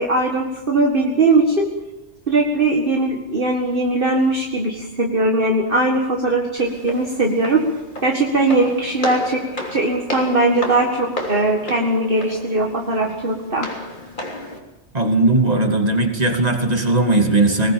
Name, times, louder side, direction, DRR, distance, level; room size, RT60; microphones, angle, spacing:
voice 1, 0.0-1.7 2.3-7.6 8.0-9.4 9.7-13.7, right 2 dB, 50° right, 0 dB, 2.1 m, -19 dB
Walk footsteps, 6.6-14.6, left 1 dB, 45° left, 3.6 m, -33 dB
voice 2, 14.9-17.7, right 2 dB, 35° right, 3 dB, 2.7 m, -18 dB
20.5 x 20.5 x 7.1 m, 0.97 s
omnidirectional pair, 1.2 m